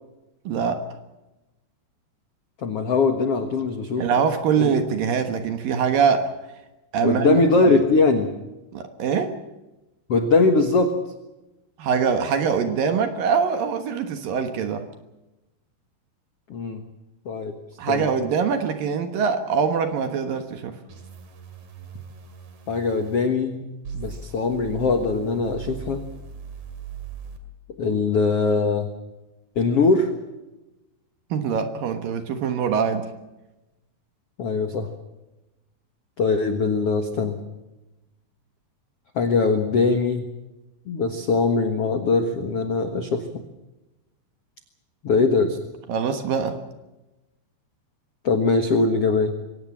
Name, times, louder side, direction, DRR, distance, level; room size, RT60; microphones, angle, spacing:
voice 1, 0.5-0.8 4.0-6.3 6.9-7.4 8.7-9.3 11.8-14.9 17.8-20.7 31.3-33.1 45.9-46.6, right 6 dB, 65° right, 8 dB, 2.6 m, -23 dB
voice 2, 2.6-4.1 4.6-4.7 7.0-8.3 10.1-11.0 16.5-16.8 17.2-17.5 17.9-18.1 22.7-23.6 23.9-26.0 27.8-28.9 29.5-30.1 34.4-34.9 36.2-37.4 39.1-40.3 40.9-43.4 45.0-45.6 48.2-49.3, left 3 dB, 70° left, 6 dB, 1.4 m, -21 dB
sound 1, 20.9-23.2 23.8-27.4, right 6 dB, 45° right, 3.4 m, -39 dB
23.5 x 18.0 x 7.3 m, 1.0 s
omnidirectional pair, 5.2 m